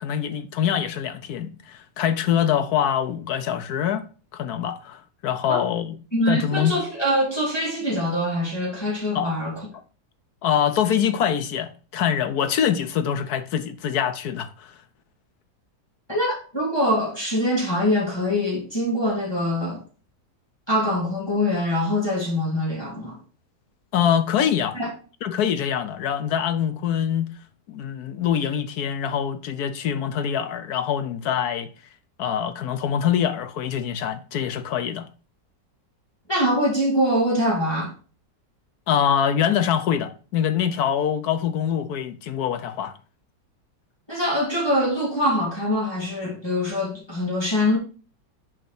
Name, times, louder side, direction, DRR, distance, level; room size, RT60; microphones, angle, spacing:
voice 1, 0.0-4.1 4.3-6.0 6.3-6.7 9.1-9.3 10.4-14.7 23.9-24.8 25.2-27.3 27.7-31.7 32.2-35.1 38.9-43.0, left 9 dB, 70° left, 1.1 m, -24 dB
voice 2, 6.1-9.5 16.1-19.8 20.7-23.2 24.7-24.9 36.3-37.9 44.1-47.8, equal, 15° left, 2.3 m, -23 dB
6.4 x 5.0 x 4.2 m
omnidirectional pair, 1.9 m